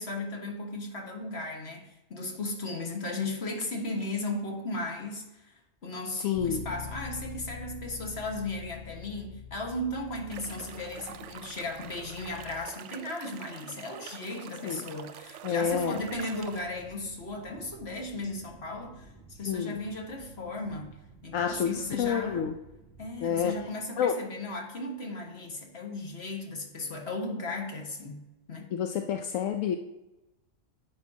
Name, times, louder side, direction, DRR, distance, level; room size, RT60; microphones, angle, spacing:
voice 1, 0.0-5.5 5.8-19.1 19.4-20.9 21.2-22.5 23.0-28.2 28.5-28.7, left 2 dB, 55° left, 2 dB, 1.7 m, -36 dB
voice 2, 6.2-6.6 14.6-14.8 15.4-16.0 19.5-19.8 21.3-22.5 23.2-23.5 24.0-24.2 28.7-29.8, left 8 dB, 80° left, 5 dB, 1.0 m, -29 dB
Bass guitar, 6.3-12.6, left 5 dB, 35° left, 0.6 m, -45 dB
sound 1, 10.3-16.6, right 9 dB, 70° right, 0.9 m, -45 dB
sound 2, 15.6-23.7, right 2 dB, 10° left, 2.3 m, -53 dB
10.5 x 8.6 x 2.8 m, 0.99 s
omnidirectional pair, 1.4 m